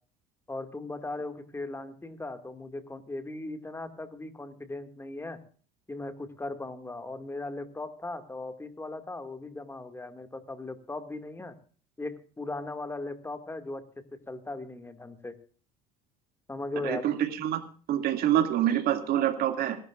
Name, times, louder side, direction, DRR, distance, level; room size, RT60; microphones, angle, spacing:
voice 1, 0.5-5.4 5.9-11.6 12.0-15.4 16.5-17.1, left 2 dB, 15° left, 8 dB, 2.2 m, -38 dB
voice 2, 16.8-17.6 17.9-19.8, right 11 dB, 60° right, 7 dB, 2.4 m, -26 dB
25.5 x 12.0 x 2.5 m, 0.41 s
supercardioid pair, 80°, 18 cm